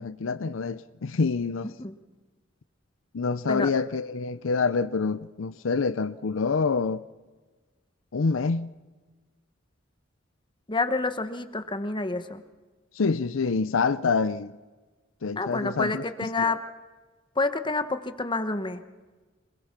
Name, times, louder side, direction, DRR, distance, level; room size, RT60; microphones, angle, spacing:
voice 1, 0.0-1.7 3.1-7.0 8.1-8.7 12.9-14.5 15.2-16.0 16.4-16.6, left 4 dB, 75° left, 0.6 m, -26 dB
voice 2, 10.7-12.4 15.4-16.6 17.4-18.8, left 3 dB, 25° left, 1.1 m, -28 dB
26.5 x 21.5 x 5.9 m
head